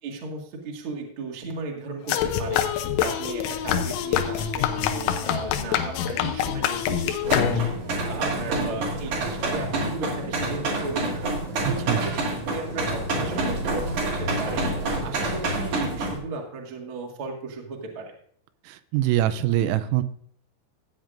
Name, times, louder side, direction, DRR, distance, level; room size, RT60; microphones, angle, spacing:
voice 1, 0.0-11.2 11.6-12.1 12.5-18.2, right 3 dB, 75° right, 0 dB, 1.2 m, -35 dB
sound 1, 2.1-7.9, left 9 dB, 85° left, 3.3 m, -25 dB
sound 2, 7.2-16.2, right 2 dB, 60° right, 1.7 m, -28 dB
voice 2, 11.6-12.0 18.6-20.0, right 13 dB, 90° right, 12 dB, 3.3 m, -24 dB
15.5 x 8.9 x 2.5 m, 0.62 s
omnidirectional pair, 5.8 m